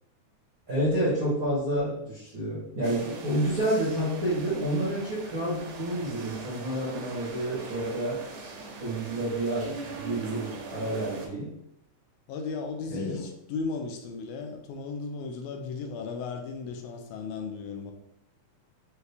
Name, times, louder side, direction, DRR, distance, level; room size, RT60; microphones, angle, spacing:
voice 1, 0.7-8.2 8.8-11.5 12.9-13.2, right 1 dB, 60° right, -8 dB, 0.9 m, -29 dB
sound 1, 2.8-11.3, right 4 dB, 75° right, 1.9 m, -41 dB
voice 2, 12.3-17.9, left 4 dB, 80° left, 4 dB, 1.9 m, -35 dB
5.5 x 2.3 x 3.3 m, 0.80 s
omnidirectional pair, 3.4 m